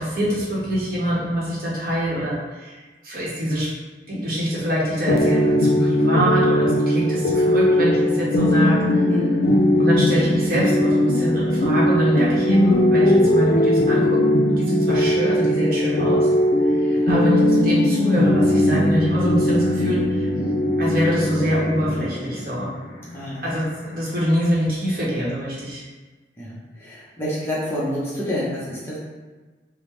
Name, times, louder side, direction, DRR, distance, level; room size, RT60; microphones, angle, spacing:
voice 1, 0.0-3.7 4.1-9.1 9.8-14.2 14.6-16.3 16.6-20.3 20.8-22.7 23.4-25.8, equal, 55° right, -6 dB, 0.9 m, -24 dB
sound 1, 5.1-24.6, left 1 dB, 55° left, 0.4 m, -19 dB
voice 2, 9.1-9.4 16.8-17.3 23.1-23.5 26.4-29.0, left 1 dB, 15° left, -9 dB, 0.7 m, -28 dB
3.5 x 2.0 x 3.1 m, 1.3 s
head